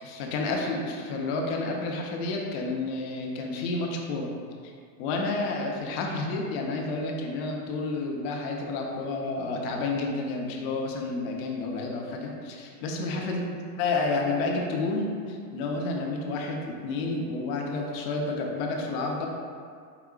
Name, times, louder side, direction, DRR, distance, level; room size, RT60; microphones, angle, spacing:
voice 1, 0.0-4.3 4.6-4.7 5.0-19.3, left 3 dB, 40° left, 0 dB, 0.5 m, -30 dB
4.8 x 3.5 x 2.3 m, 2.2 s
supercardioid pair, 135°, 50 cm